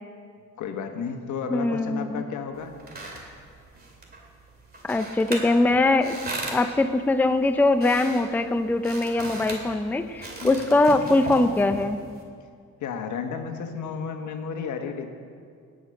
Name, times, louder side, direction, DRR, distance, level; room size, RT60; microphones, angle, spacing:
voice 1, 0.6-2.8 10.4-10.7 12.8-15.1, left 6 dB, 75° left, 5 dB, 1.3 m, -32 dB
voice 2, 1.5-2.2 4.8-6.2 6.5-12.0, left 2 dB, 5° left, 9 dB, 0.5 m, -22 dB
sound 1, 2.5-12.2, right 2 dB, 30° right, 2.6 m, -38 dB
18.0 x 6.4 x 6.4 m, 2.2 s
cardioid pair, 90°, 30 cm